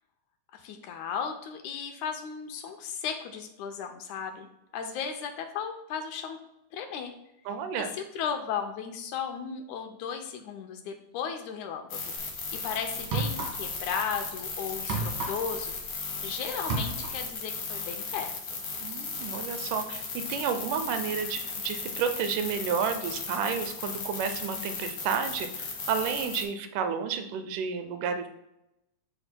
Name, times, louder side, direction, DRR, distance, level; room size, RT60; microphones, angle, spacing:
voice 1, 0.5-4.5 4.7-6.4 6.7-7.1 7.9-12.1 12.5-18.6, left 7 dB, 75° left, 5 dB, 2.0 m, -35 dB
voice 2, 7.5-7.9 18.8-28.3, right 6 dB, 85° right, 8 dB, 2.2 m, -31 dB
sound 1, 11.9-26.4, left 4 dB, 55° left, 2.2 m, -36 dB
sound 2, 12.2-12.4 13.0-13.9 14.1-16.3 16.5-17.3, right 4 dB, 65° right, 2.7 m, -33 dB
11.5 x 4.4 x 2.2 m, 0.87 s
omnidirectional pair, 3.6 m